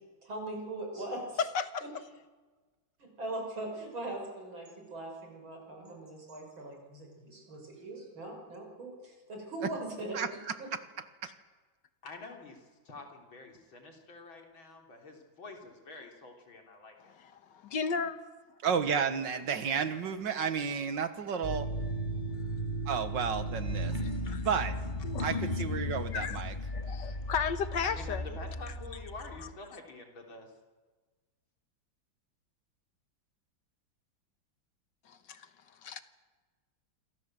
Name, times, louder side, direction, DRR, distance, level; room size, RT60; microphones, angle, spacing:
voice 1, 0.2-1.4 3.0-10.2, right 2 dB, 90° right, 2 dB, 6.7 m, -40 dB
voice 2, 1.4-1.8 17.0-18.2 24.3-24.5 25.1-25.4 26.1-26.4 26.7-28.2 35.1-35.5 35.8-36.0, left 6 dB, 65° left, 11 dB, 1.9 m, -34 dB
voice 3, 10.1-10.8 11.2-11.3 18.6-21.7 22.9-24.0 24.4-24.8 25.2-26.5, right 6 dB, 65° right, 11 dB, 2.1 m, -32 dB
voice 4, 12.0-17.1 27.8-30.5, left 3 dB, 85° left, 2 dB, 4.5 m, -47 dB
sound 1, 21.4-29.5, equal, 25° left, 2.0 m, -35 dB
28.0 x 24.0 x 7.8 m, 1.3 s
omnidirectional pair, 2.1 m